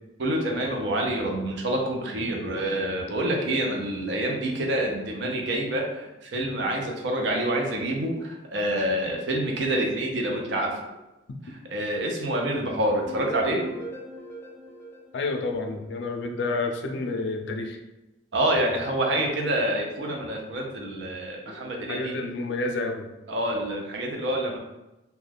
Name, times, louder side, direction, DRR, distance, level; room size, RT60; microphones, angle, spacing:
voice 1, 0.2-10.7 11.5-13.7 18.3-22.1 23.3-24.6, right 1 dB, 70° right, 0 dB, 0.5 m, -27 dB
sound 1, 13.0-16.0, right 1 dB, 10° left, 0.5 m, -40 dB
voice 2, 15.1-17.8 21.5-23.1, left 3 dB, 65° left, 4 dB, 0.4 m, -30 dB
2.3 x 2.2 x 3.3 m, 1.0 s
head